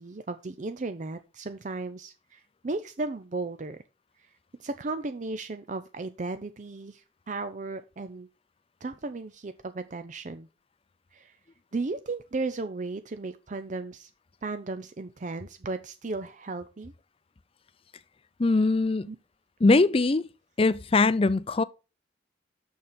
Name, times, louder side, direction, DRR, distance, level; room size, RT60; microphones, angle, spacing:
voice 1, 0.0-3.8 4.6-8.3 8.8-10.5 11.1-11.3 11.7-14.1 14.4-16.9 19.1-19.2, right 3 dB, 40° right, 0.5 m, -35 dB
voice 2, 18.4-19.1 19.6-20.2 20.6-21.6, left 3 dB, 30° left, 0.5 m, -21 dB
6.9 x 6.6 x 5.5 m
head